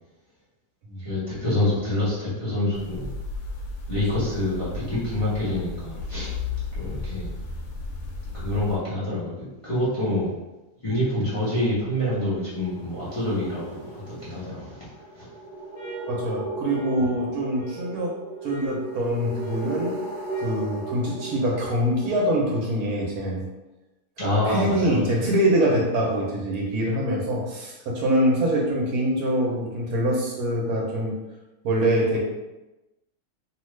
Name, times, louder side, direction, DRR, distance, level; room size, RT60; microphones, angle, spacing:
voice 1, 1.0-3.1 3.9-6.3 6.7-7.3 8.3-9.3 9.6-10.3 10.8-14.8 15.1-15.3 24.2-25.2, left 1 dB, 25° left, -10 dB, 0.8 m, -26 dB
sound 1, 2.7-8.8, left 3 dB, 85° left, 1.1 m, -34 dB
sound 2, 12.4-22.3, right 2 dB, 35° right, 0.5 m, -36 dB
sound 3, 15.7-20.7, right 8 dB, 65° left, 1.1 m, -42 dB
voice 2, 16.1-18.1 18.4-20.0 20.4-23.4 24.4-31.2 31.6-32.2, right 1 dB, 75° right, -2 dB, 1.2 m, -24 dB
2.8 x 2.4 x 3.1 m, 1.0 s
omnidirectional pair, 1.6 m